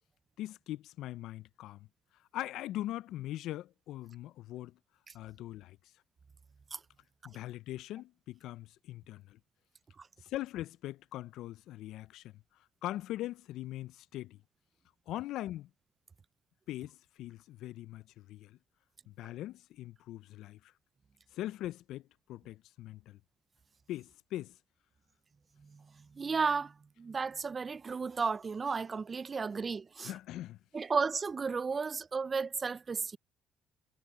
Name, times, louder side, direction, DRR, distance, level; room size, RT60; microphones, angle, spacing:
voice 1, 0.4-1.9 2.3-4.8 5.1-5.8 7.2-9.4 10.2-12.3 12.8-14.4 15.1-15.7 16.7-18.6 19.1-20.7 21.3-23.2 23.9-24.6 30.0-30.6, left 14 dB, 75° left, 0.5 m, -41 dB
voice 2, 26.1-30.1 30.7-33.2, right 5 dB, 35° right, 0.5 m, -34 dB
hypercardioid pair, 60°, 0 cm